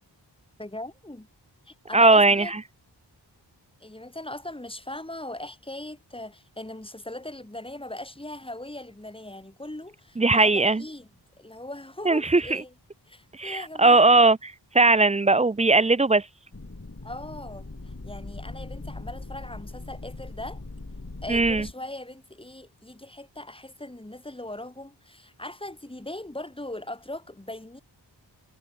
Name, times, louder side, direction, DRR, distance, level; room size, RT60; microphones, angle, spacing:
voice 1, 0.6-1.3 1.6-2.5 3.8-11.1 11.4-12.7 13.1-14.1 17.0-20.6 21.2-27.8, left 1 dB, 10° left, 2.9 m, -39 dB
voice 2, 1.9-2.6 10.2-10.8 12.1-12.6 13.3-16.3 21.3-21.7, right 3 dB, 15° right, 0.5 m, -19 dB
sound 1, 16.5-21.7, left 2 dB, 35° left, 6.8 m, -40 dB
wide cardioid pair, 70°, 44 cm